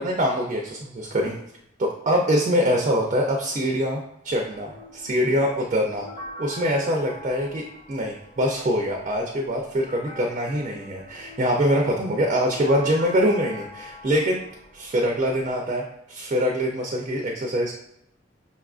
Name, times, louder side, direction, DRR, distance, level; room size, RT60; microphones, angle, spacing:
voice 1, 0.0-1.3 1.8-6.1 6.4-14.4 14.7-17.7, equal, 35° right, 1 dB, 0.4 m, -24 dB
sound 1, 4.3-15.6, left 2 dB, 25° left, 0.7 m, -44 dB
5.3 x 2.4 x 2.3 m, 0.76 s
head